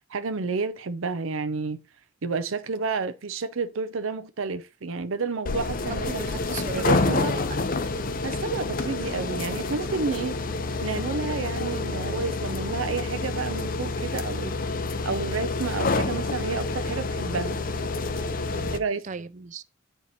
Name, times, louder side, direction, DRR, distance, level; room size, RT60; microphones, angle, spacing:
voice 1, 0.0-1.8 2.2-6.1 6.8-7.4 8.2-10.4 10.8-14.6 15.0-17.6 18.7-19.0, right 4 dB, 75° right, 0.6 m, -30 dB
sound 1, 5.5-18.8, left 3 dB, 40° left, 0.6 m, -28 dB
voice 2, 6.1-7.6 18.5-19.6, right 5 dB, 35° right, 0.4 m, -38 dB
8.7 x 4.6 x 4.2 m
head